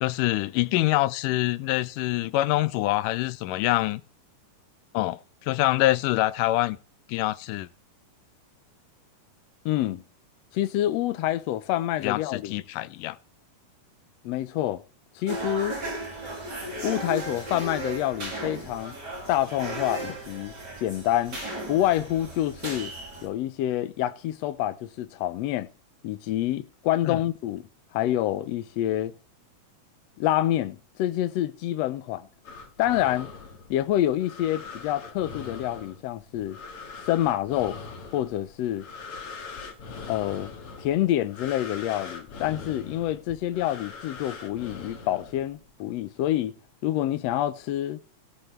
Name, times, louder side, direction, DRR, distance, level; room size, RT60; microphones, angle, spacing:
voice 1, 0.0-4.0 4.9-6.8 7.1-7.7 12.0-13.2 27.1-27.2, left 17 dB, 90° left, 2.2 m, -25 dB
voice 2, 9.7-10.0 10.5-12.5 14.2-14.8 15.2-15.8 16.8-19.0 19.3-20.5 20.8-21.4 21.7-22.9 23.2-25.7 26.0-27.7 27.9-29.1 30.2-32.3 32.8-33.3 33.7-36.6 37.1-37.8 38.1-38.9 40.1-40.5 40.8-46.5 46.8-48.0, left 13 dB, 70° left, 1.7 m, -27 dB
sound 1, 15.3-23.3, right 2 dB, 30° right, 4.5 m, -35 dB
sound 2, 32.4-45.7, left 4 dB, 50° left, 2.6 m, -42 dB
17.5 x 8.0 x 3.3 m
omnidirectional pair, 3.6 m